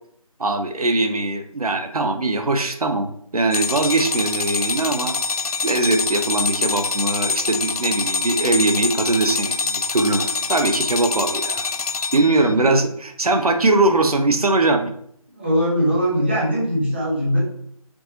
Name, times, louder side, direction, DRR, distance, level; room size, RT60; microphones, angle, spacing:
voice 1, 0.4-5.1 5.6-11.7 12.1-14.9, right 2 dB, 80° right, 6 dB, 0.6 m, -21 dB
sound 1, 3.5-12.5, left 4 dB, 75° left, 0.4 m, -25 dB
voice 2, 12.2-12.8 15.3-17.4, equal, 20° right, -6 dB, 0.9 m, -21 dB
4.5 x 2.8 x 2.7 m, 0.69 s
figure-of-eight pair, 170°, 19 cm